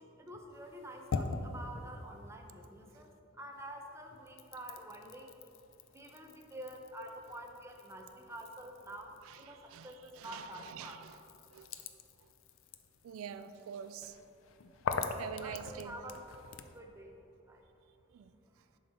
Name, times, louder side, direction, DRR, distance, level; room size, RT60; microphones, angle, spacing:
voice 1, 0.0-5.3 5.9-11.5 14.9-16.2 16.7-17.7 18.5-18.6, right 1 dB, 15° right, 2 dB, 0.6 m, -48 dB
sound 1, 0.5-3.2 3.5-16.8, left 4 dB, 70° left, 0.4 m, -44 dB
voice 2, 9.7-11.1 11.5-11.7 12.2-12.3 13.0-14.2 15.2-15.9 18.1-18.3, right 8 dB, 85° right, 11 dB, 0.3 m, -46 dB
10.5 x 3.7 x 4.2 m, 2.7 s
head